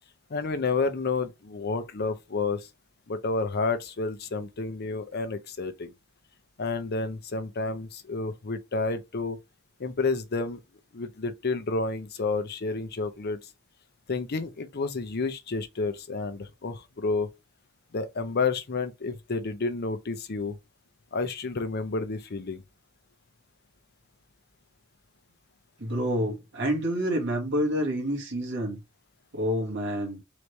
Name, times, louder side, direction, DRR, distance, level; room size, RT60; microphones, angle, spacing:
voice 1, 0.3-2.7 3.1-5.9 6.6-9.4 9.8-10.6 10.9-13.4 14.1-17.3 17.9-20.6 21.1-22.6, left 3 dB, 50° left, 0.7 m, -30 dB
voice 2, 25.8-28.8 29.3-30.2, equal, 60° right, 1.9 m, -28 dB
4.1 x 3.2 x 3.3 m
head